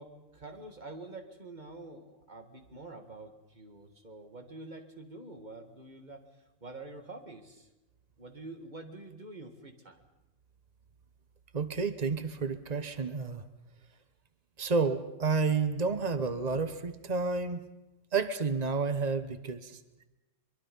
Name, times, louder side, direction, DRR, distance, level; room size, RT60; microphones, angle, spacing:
voice 1, 0.0-7.7 8.2-10.0, right 2 dB, 20° right, 5 dB, 1.9 m, -47 dB
voice 2, 11.5-13.4 14.6-17.6 18.1-19.8, right 4 dB, 85° right, 10 dB, 0.3 m, -30 dB
23.5 x 23.5 x 5.4 m, 1.0 s
omnidirectional pair, 2.4 m